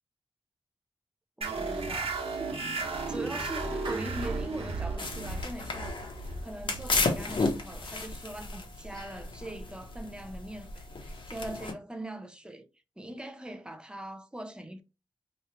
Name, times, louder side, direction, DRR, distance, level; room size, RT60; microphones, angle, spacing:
voice 1, 1.4-12.7 13.0-14.8, right 1 dB, 10° right, 0.5 m, -42 dB
sound 1, 1.4-8.5, right 3 dB, 80° right, 1.0 m, -35 dB
Clapping, 3.8-6.1, right 3 dB, 55° right, 0.8 m, -45 dB
sound 2, 5.0-11.7, left 3 dB, 60° left, 0.9 m, -34 dB
3.0 x 2.4 x 4.3 m
wide cardioid pair, 90°, 10 cm